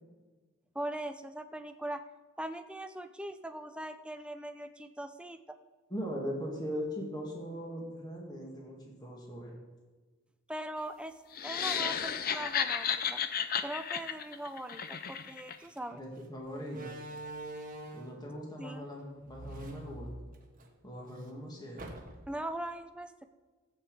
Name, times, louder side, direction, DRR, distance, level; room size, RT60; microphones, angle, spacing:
voice 1, 0.7-2.0 2.4-5.6 10.5-11.2 11.4-13.2 13.6-16.0 18.6-18.9 22.3-23.3, right 1 dB, 5° right, 8 dB, 0.6 m, -40 dB
voice 2, 5.9-9.6 15.9-16.9 17.9-20.1 20.8-21.9, equal, 20° left, -1 dB, 2.2 m, -40 dB
sound 1, 11.3-15.6, left 8 dB, 45° left, 0.6 m, -33 dB
Slam, 15.6-15.8 16.6-18.2 19.2-20.7 21.0-21.1 21.8-22.4, right 2 dB, 45° right, 1.3 m, -44 dB
13.5 x 8.2 x 4.9 m, 1.3 s
head